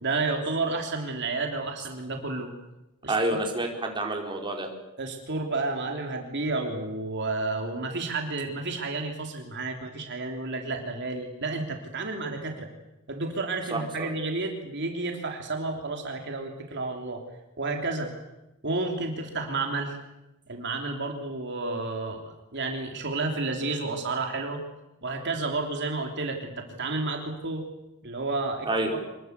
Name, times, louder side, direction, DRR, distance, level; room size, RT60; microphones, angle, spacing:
voice 1, 0.0-2.5 3.0-3.4 5.0-12.7 13.1-17.2 17.6-18.1 18.6-20.0 20.5-24.6 25.0-27.6 28.0-29.0, right 3 dB, 55° right, 3 dB, 3.3 m, -31 dB
voice 2, 3.1-4.7 13.7-14.1 28.7-29.0, right 2 dB, 25° right, 1 dB, 4.4 m, -28 dB
26.0 x 21.5 x 8.3 m, 0.97 s
head